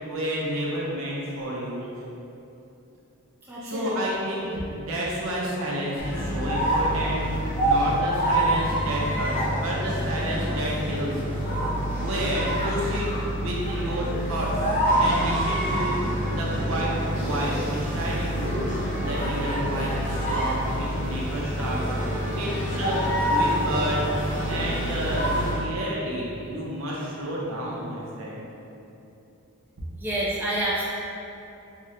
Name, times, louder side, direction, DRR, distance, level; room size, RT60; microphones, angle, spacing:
voice 1, 0.0-1.9 3.6-13.1 13.4-14.5 15.0-16.0 16.3-21.9 22.2-28.5, right 1 dB, 65° right, -4 dB, 0.6 m, -30 dB
voice 2, 3.5-4.2 30.0-30.8, right 1 dB, 10° right, -8 dB, 0.3 m, -28 dB
sound 1, 6.0-25.7, equal, 35° left, 0.7 m, -26 dB
3.7 x 2.1 x 2.8 m, 2.8 s
head